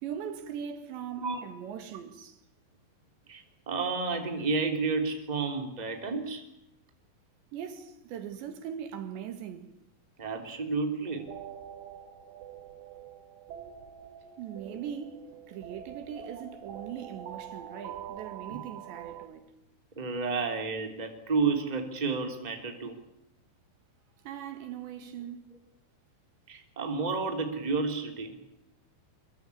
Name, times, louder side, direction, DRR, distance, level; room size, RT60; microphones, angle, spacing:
voice 1, 0.0-2.4 7.5-9.7 14.4-19.5 24.3-25.5, right 8 dB, 70° right, 3.9 m, -40 dB
voice 2, 3.3-6.4 10.2-11.3 14.6-14.8 18.5-18.6 20.0-22.9 26.5-28.3, right 4 dB, 10° right, 2.7 m, -31 dB
sound 1, 11.1-19.3, right 9 dB, 55° right, 3.6 m, -45 dB
25.5 x 23.0 x 8.6 m
omnidirectional pair, 5.5 m